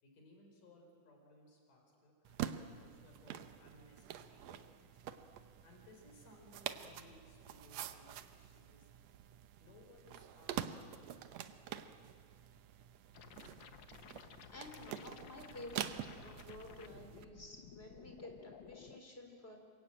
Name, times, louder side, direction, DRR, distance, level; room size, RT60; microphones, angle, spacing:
voice 1, 0.0-5.0 5.6-8.9 9.6-11.9, left 1 dB, 85° left, 2 dB, 5.9 m, -63 dB
sound 1, 2.2-17.2, right 10 dB, 70° right, 1.9 m, -47 dB
sound 2, 13.1-19.0, left 7 dB, 70° left, 1.1 m, -56 dB
voice 2, 14.2-19.6, left 2 dB, 20° left, 3 dB, 3.9 m, -52 dB
28.5 x 23.5 x 8.9 m, 2.2 s
omnidirectional pair, 3.7 m